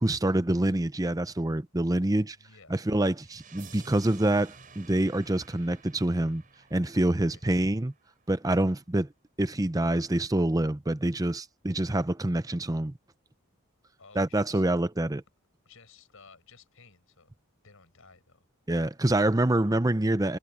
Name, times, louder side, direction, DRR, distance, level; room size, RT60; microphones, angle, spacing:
voice 1, 0.0-2.4 2.7-6.4 6.7-7.9 8.3-9.1 9.4-12.9 14.2-15.2 18.7-20.4, right 1 dB, 15° right, 0.7 m, -26 dB
voice 2, 2.4-2.8 7.2-7.4 14.0-14.7 15.6-17.3 17.6-18.5 20.1-20.3, left 4 dB, 65° left, 5.8 m, -55 dB
sound 1, 3.2-8.1, right 4 dB, 40° right, 5.5 m, -52 dB
head